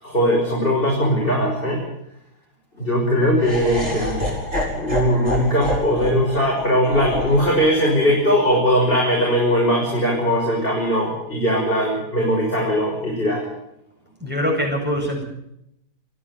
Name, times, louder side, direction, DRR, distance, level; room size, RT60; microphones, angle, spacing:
voice 1, 0.0-1.8 2.8-4.3 4.7-13.4, equal, 35° left, -3 dB, 6.7 m, -20 dB
Laughter, 3.4-9.5, left 1 dB, 45° right, 6.5 m, -29 dB
voice 2, 14.2-15.2, equal, 5° right, 0 dB, 7.6 m, -23 dB
28.0 x 11.0 x 9.4 m, 0.79 s
omnidirectional pair, 1.7 m